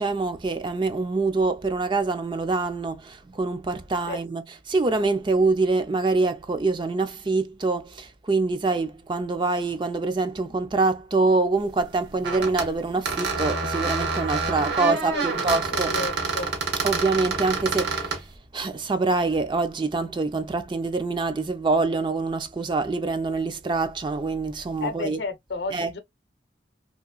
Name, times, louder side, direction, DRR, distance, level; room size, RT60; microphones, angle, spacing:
voice 1, 0.0-15.9 16.8-18.2 18.5-25.2 25.7-25.9, right 3 dB, 25° right, 0.3 m, -25 dB
sound 1, 12.2-12.7 13.1-18.2, right 4 dB, 70° right, 1.1 m, -27 dB
voice 2, 14.3-16.5 24.8-26.0, left 3 dB, 70° left, 0.6 m, -33 dB
3.0 x 2.9 x 2.2 m
head